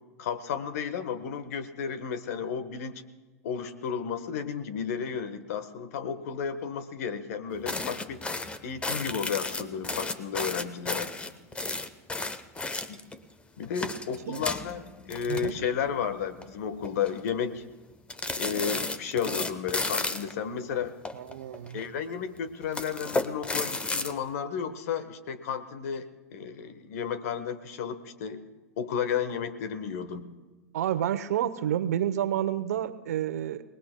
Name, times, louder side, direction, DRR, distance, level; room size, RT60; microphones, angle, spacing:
voice 1, 0.2-3.0 3.4-8.2 8.6-11.1 12.9-13.0 13.6-17.6 18.4-20.9 21.7-28.4 28.8-30.3, left 7 dB, 70° left, 12 dB, 1.3 m, -33 dB
sound 1, 7.7-13.2 13.6-15.9 16.2-16.4 16.8-17.3 18.1-20.3 21.1-21.9 22.6-24.1, left 3 dB, 15° left, 0.9 m, -33 dB
voice 2, 21.1-21.8 30.7-33.6, right 11 dB, 75° right, 12 dB, 0.9 m, -29 dB
30.0 x 19.5 x 2.3 m, 1.2 s
hypercardioid pair, 105°, 8 cm